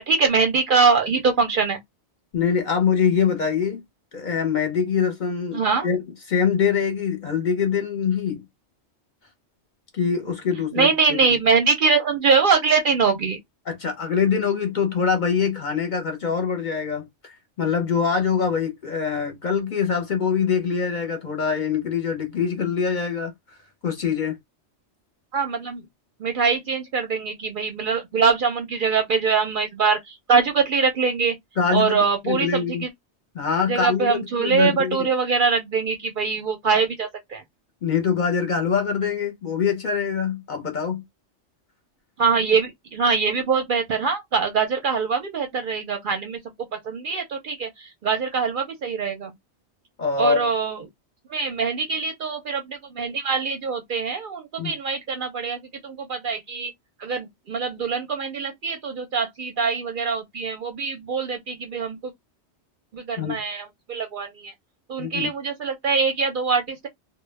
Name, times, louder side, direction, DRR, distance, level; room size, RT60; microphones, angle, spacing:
voice 1, 0.0-1.8 5.5-5.9 10.7-13.4 25.3-25.8 26.2-31.3 31.7-32.9 33.7-37.4 42.2-46.4 46.8-49.3 50.2-50.8 51.3-56.7 57.0-62.1 62.9-64.5 64.9-66.9, right 5 dB, 60° right, 0.6 m, -23 dB
voice 2, 2.3-3.8 4.1-6.0 6.3-8.4 9.9-11.4 13.7-23.3 23.8-24.4 31.6-32.8 33.3-35.1 37.8-41.0 50.0-50.5 54.6-54.7 63.2-63.4 65.0-65.3, left 6 dB, 50° left, 0.6 m, -24 dB
2.1 x 2.0 x 3.1 m
omnidirectional pair, 1.2 m